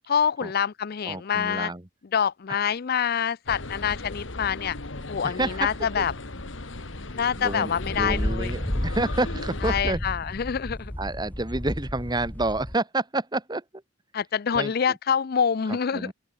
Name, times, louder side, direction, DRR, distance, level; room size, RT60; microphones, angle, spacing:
voice 1, 0.1-1.7 2.1-4.8 5.1-6.1 7.1-8.5 9.6-10.9 14.1-16.1, left 7 dB, 50° left, 0.5 m, -26 dB
voice 2, 1.0-1.9 5.2-5.7 6.0-6.1 7.3-10.0 11.0-13.8 14.5-15.0 15.7-16.1, right 2 dB, 20° right, 1.4 m, -29 dB
sound 1, 3.5-9.8, left 2 dB, 75° left, 2.2 m, -36 dB
sound 2, 7.8-12.8, equal, 10° left, 0.7 m, -32 dB
open air
head